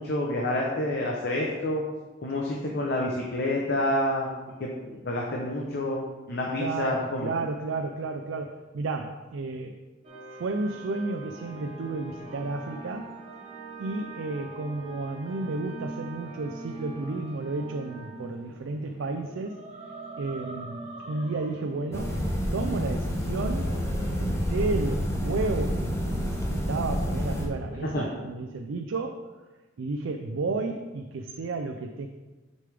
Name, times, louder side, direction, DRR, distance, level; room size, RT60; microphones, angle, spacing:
voice 1, 0.0-1.8 2.2-4.3 4.6-7.3 27.8-28.1, left 1 dB, 55° left, -1 dB, 0.8 m, -28 dB
voice 2, 6.6-9.8 10.3-13.1 13.8-19.6 20.2-22.2 22.5-23.7 24.2-29.3 29.8-32.1, right 3 dB, 80° right, 5 dB, 0.4 m, -32 dB
sound 1, 10.0-28.0, right 2 dB, 30° right, 1.1 m, -44 dB
sound 2, 21.9-27.5, equal, 15° left, 0.7 m, -28 dB
6.6 x 5.2 x 3.4 m, 1.2 s
head